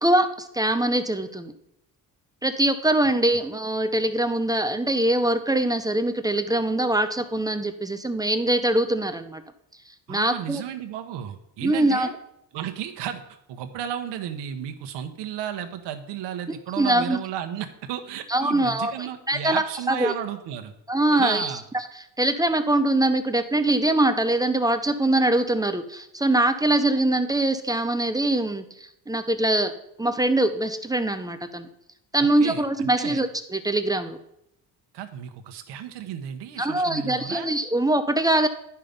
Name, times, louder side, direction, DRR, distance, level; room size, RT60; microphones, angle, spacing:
voice 1, 0.0-1.5 2.4-9.4 10.1-10.6 11.6-12.1 16.8-17.2 18.3-20.1 20.9-21.5 22.2-29.7 30.0-31.7 32.1-34.2 36.6-38.5, right 1 dB, 10° right, 9 dB, 0.5 m, -23 dB
voice 2, 10.1-12.1 12.5-13.2 13.5-20.7 21.1-21.6 32.2-33.2 34.9-37.5, right 9 dB, 90° right, 6 dB, 1.2 m, -33 dB
11.0 x 5.8 x 5.3 m, 0.80 s
cardioid pair, 130°, 41 cm